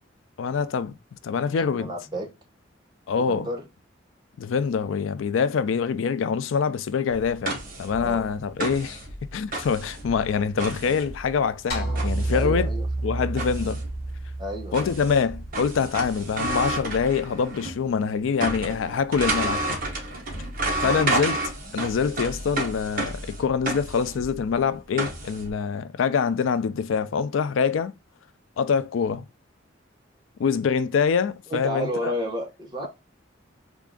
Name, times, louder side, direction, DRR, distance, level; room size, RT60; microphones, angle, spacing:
voice 1, 0.4-1.0 1.2-1.9 3.1-3.5 4.4-9.0 9.3-12.7 13.0-13.8 14.7-19.8 20.8-21.4 21.7-27.9 28.6-29.2 30.4-32.1, left 6 dB, 85° left, 0.4 m, -25 dB
voice 2, 1.5-2.3 3.2-3.6 7.9-8.3 12.3-12.9 14.4-14.9 20.7-21.0 31.5-32.9, equal, 25° right, 0.9 m, -32 dB
sound 1, 7.1-17.8 18.1-25.5, right 2 dB, 45° right, 1.0 m, -31 dB
sound 2, 11.7-16.1, right 2 dB, 55° left, 1.1 m, -30 dB
3.5 x 2.4 x 3.6 m
head